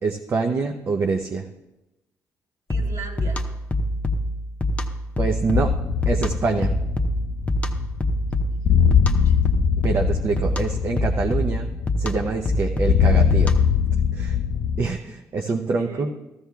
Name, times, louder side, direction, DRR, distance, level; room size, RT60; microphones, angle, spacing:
voice 1, 0.0-1.4 5.2-5.7 6.1-6.8 9.8-11.7 12.0-13.5 14.1-14.4 14.8-16.1, right 4 dB, 45° right, 3 dB, 0.7 m, -25 dB
sound 1, 2.7-13.8, equal, 20° left, 0.9 m, -26 dB
voice 2, 2.7-3.4 8.5-9.4 15.7-16.2, right 4 dB, 85° right, -3 dB, 3.4 m, -40 dB
sound 2, 5.5-14.9, left 7 dB, 65° left, 0.4 m, -22 dB
14.5 x 14.0 x 2.3 m, 0.97 s
cardioid pair, 105°, 6 cm